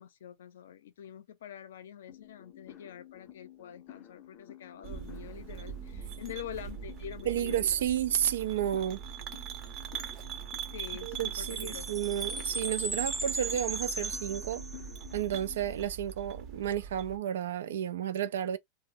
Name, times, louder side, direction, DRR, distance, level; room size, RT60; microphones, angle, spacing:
voice 1, 0.0-7.6 10.7-12.0, left 10 dB, 85° left, 0.5 m, -46 dB
sound 1, 2.1-15.9, left 12 dB, 35° left, 0.6 m, -52 dB
sound 2, 4.8-17.2, right 9 dB, 45° right, 0.7 m, -42 dB
voice 2, 7.3-9.0 11.0-14.6 15.1-18.6, right 10 dB, 90° right, 0.3 m, -31 dB
Chime, 11.4-15.1, right 2 dB, 10° right, 0.4 m, -37 dB
2.0 x 2.0 x 3.6 m
supercardioid pair, 130°, 0 cm